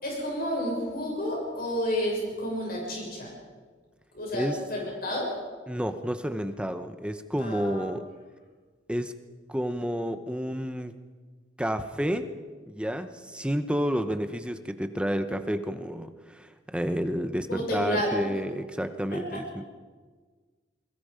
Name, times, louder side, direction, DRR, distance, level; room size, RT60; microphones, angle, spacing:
voice 1, 0.0-3.3 4.1-5.3 7.4-7.8 17.5-18.1 19.1-19.4, equal, 55° left, -2 dB, 6.5 m, -30 dB
voice 2, 5.7-8.1 8.9-9.1 9.5-10.9 11.6-12.3 12.7-19.7, equal, 5° right, 9 dB, 0.9 m, -30 dB
29.0 x 22.0 x 5.2 m, 1.4 s
head